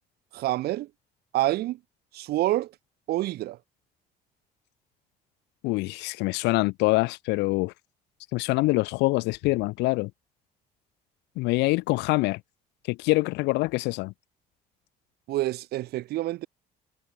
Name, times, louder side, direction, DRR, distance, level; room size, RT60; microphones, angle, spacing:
voice 1, 0.3-0.9 1.3-1.8 2.1-2.7 3.1-3.6 15.3-16.5, right 16 dB, 70° right, 0.7 m, -27 dB
voice 2, 5.6-7.7 8.3-10.1 11.4-12.4 12.9-14.1, left 23 dB, 90° left, 0.5 m, -25 dB
cardioid pair, 110°, 17 cm